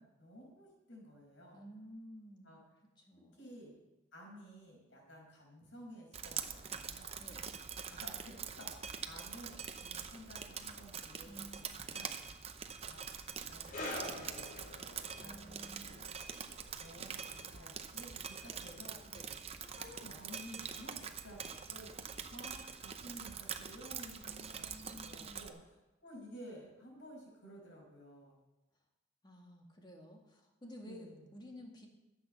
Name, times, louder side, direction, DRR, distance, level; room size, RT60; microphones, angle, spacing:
voice 1, 0.0-1.6 2.4-2.6 3.3-3.7 4.1-7.1 7.9-8.8 9.1-12.1 12.9-13.1 13.5-14.9 15.2-15.7 16.8-19.0 19.6-22.0 22.3-25.7 26.0-28.4 30.8-31.3, equal, 70° left, -1 dB, 5.5 m, -53 dB
voice 2, 1.5-2.5 3.0-3.5 7.2-7.5 11.2-11.6 15.2-16.0 19.1-19.3 24.3-25.6 29.2-31.9, equal, 20° left, 1 dB, 2.0 m, -53 dB
Drip, 6.1-25.5, right 7 dB, 30° right, 0.7 m, -45 dB
sound 1, 13.7-20.7 20.9-21.2 21.9-22.0, left 1 dB, 45° left, 2.6 m, -49 dB
14.0 x 8.2 x 6.7 m, 1.0 s
head